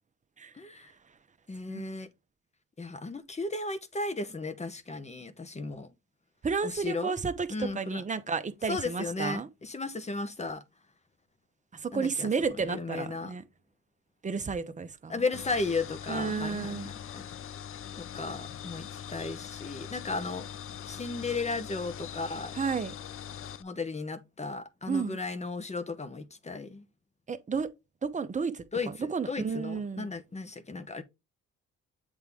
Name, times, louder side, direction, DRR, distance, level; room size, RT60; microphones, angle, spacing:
voice 1, 0.5-0.9 1.5-2.1 2.8-5.9 6.6-7.1 7.5-8.0 8.6-10.6 11.9-12.3 12.6-13.3 15.1-17.2 18.0-20.5 20.9-22.5 23.6-26.8 28.7-31.0, left 3 dB, 20° left, 0.9 m, -35 dB
voice 2, 6.4-9.5 11.7-13.4 14.2-15.2 16.1-16.9 22.5-22.9 24.9-25.2 27.3-27.7 28.0-28.6 29.1-30.1, right 5 dB, 25° right, 0.8 m, -32 dB
sound 1, 15.3-23.6, left 9 dB, 45° left, 0.5 m, -42 dB
8.0 x 3.5 x 3.5 m
cardioid pair, 90°, 30 cm